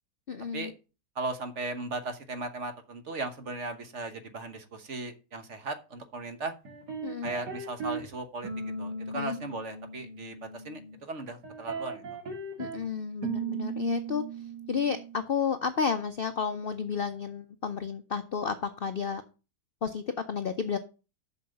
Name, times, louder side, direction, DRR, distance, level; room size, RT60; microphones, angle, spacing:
voice 1, 0.3-0.7 7.0-7.3 9.1-9.4 12.6-14.2 14.7-19.2 19.8-20.8, left 6 dB, 80° left, 9 dB, 0.5 m, -31 dB
voice 2, 1.1-6.5 7.2-8.5 8.8-12.0, right 3 dB, 45° right, 8 dB, 1.2 m, -37 dB
sound 1, 6.6-8.1 8.4-11.0 11.4-12.8 13.2-15.2, right 4 dB, 65° right, 2.9 m, -37 dB
7.0 x 6.4 x 6.5 m, 0.33 s
omnidirectional pair, 1.9 m